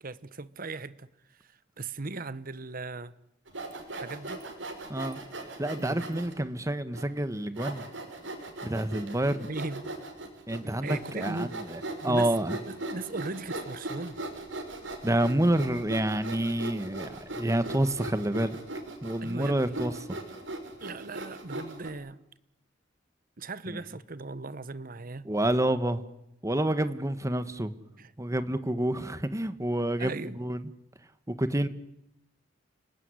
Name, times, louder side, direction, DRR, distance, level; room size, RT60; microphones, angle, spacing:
voice 1, 0.0-3.1 3.9-4.4 5.8-6.5 9.4-9.9 10.6-11.6 12.0-12.3 12.7-14.2 19.2-19.8 20.8-22.2 23.4-25.3 28.0-28.1 30.0-30.4, right 3 dB, 50° right, 1.1 m, -38 dB
Sawing, 3.5-6.3 6.9-7.0 7.6-21.9, right 2 dB, 90° right, 6.1 m, -39 dB
voice 2, 4.9-5.2 5.6-7.8 8.6-9.5 10.5-12.6 15.0-18.6 19.0-20.2 23.7-23.8 25.2-26.0 26.4-27.7 28.2-30.6 31.3-31.7, right 1 dB, 15° right, 1.4 m, -28 dB
29.5 x 19.5 x 9.7 m
head